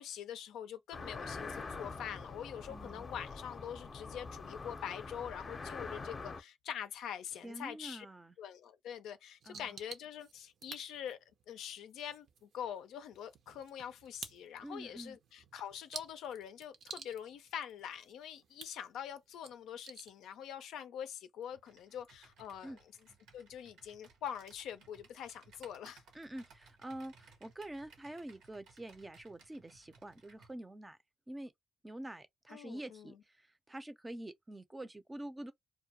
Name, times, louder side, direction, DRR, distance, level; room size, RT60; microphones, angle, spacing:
voice 1, 0.0-8.1 8.4-11.2 11.5-22.8 23.3-26.0 32.5-33.2, left 9 dB, 85° left, 0.4 m, -44 dB
sound 1, 0.9-6.4, left 4 dB, 35° left, 0.6 m, -45 dB
voice 2, 2.7-3.1 7.4-8.4 9.4-9.8 14.6-15.2 22.6-22.8 26.1-31.0 31.3-31.5 31.8-35.5, right 1 dB, 15° right, 0.5 m, -46 dB
sound 2, 9.4-20.5, right 6 dB, 65° right, 0.6 m, -53 dB
Computer keyboard, 21.5-30.6, right 4 dB, 85° right, 0.9 m, -62 dB
2.2 x 2.2 x 2.8 m
cardioid pair, 90°, 0 cm